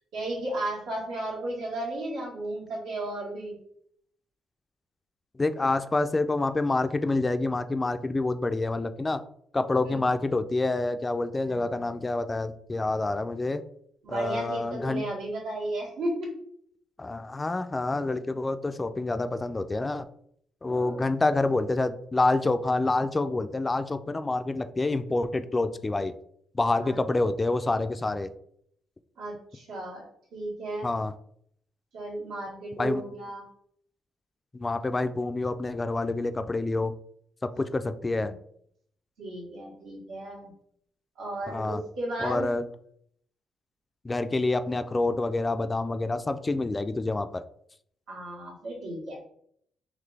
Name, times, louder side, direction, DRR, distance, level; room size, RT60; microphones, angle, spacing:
voice 1, 0.1-3.6 9.8-10.0 11.4-12.0 14.0-16.4 20.6-21.2 26.8-27.0 29.2-30.0 30.3-30.9 31.9-33.5 38.1-38.4 39.2-40.5 41.2-42.5 48.1-49.2, right 1 dB, 85° right, -3 dB, 1.7 m, -34 dB
voice 2, 5.4-9.2 9.5-13.6 14.1-15.0 17.0-20.1 20.6-26.1 26.5-28.3 30.8-31.1 32.8-33.0 34.5-36.9 37.6-38.3 41.5-41.8 42.2-42.6 44.0-47.4, left 2 dB, 20° left, 10 dB, 0.3 m, -27 dB
3.9 x 2.9 x 3.3 m, 0.68 s
cardioid pair, 90°, 0 cm